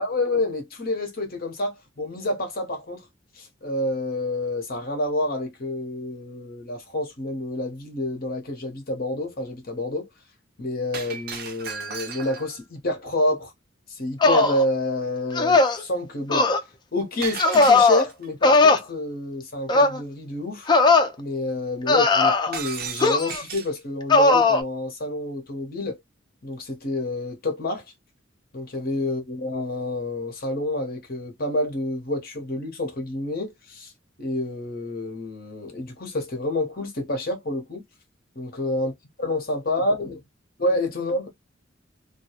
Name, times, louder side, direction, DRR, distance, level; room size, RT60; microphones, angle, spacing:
voice 1, 0.0-3.1 3.3-10.1 10.6-13.5 13.9-16.6 16.9-20.7 21.2-26.0 26.4-27.8 28.5-33.9 34.2-37.8 38.4-38.9 39.2-40.2 40.6-41.3, left 1 dB, 50° left, 0.9 m, -28 dB
Shatter, 10.9-12.6 17.2-18.3 22.5-23.8, right 6 dB, 55° right, 0.6 m, -35 dB
sound 1, 14.2-14.6 15.4-15.8 16.3-16.6 17.4-18.0 18.4-18.8 19.7-20.0 20.7-21.1 21.9-22.6 23.0-23.4 24.1-24.6, left 3 dB, 25° left, 0.4 m, -18 dB
2.3 x 2.2 x 2.8 m
head